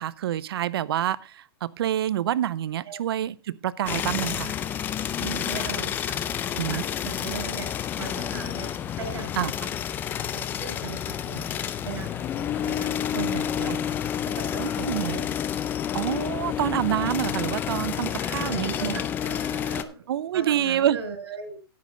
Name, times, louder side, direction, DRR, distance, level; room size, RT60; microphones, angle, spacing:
voice 1, 0.0-4.5 6.6-6.8 9.4-9.7 13.6-13.8 14.6-15.2 15.9-19.0 20.1-21.0, right 11 dB, 65° right, 19 dB, 0.6 m, -27 dB
sound 1, 3.9-19.8, left 9 dB, 15° left, 0.4 m, -29 dB
voice 2, 5.2-6.2 6.5-7.7 8.0-9.3 10.3-11.5 11.8-13.8 14.4-15.3 18.2-20.0 20.3-21.6, right 5 dB, 85° right, 5 dB, 5.5 m, -38 dB
10.5 x 9.4 x 3.8 m, 0.33 s
hypercardioid pair, 160°, 13 cm